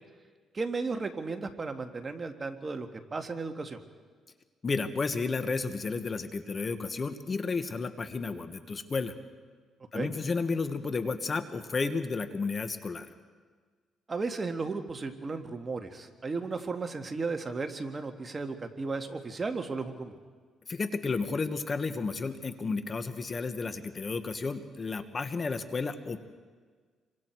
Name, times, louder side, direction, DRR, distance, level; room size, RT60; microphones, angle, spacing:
voice 1, 0.5-3.8 9.9-10.1 14.1-20.2, right 4 dB, 30° right, 6 dB, 1.8 m, -35 dB
voice 2, 4.6-9.1 9.9-13.1 20.7-26.2, left 4 dB, 35° left, 9 dB, 1.4 m, -32 dB
28.0 x 24.0 x 4.7 m, 1.5 s
cardioid pair, 90°, 0 cm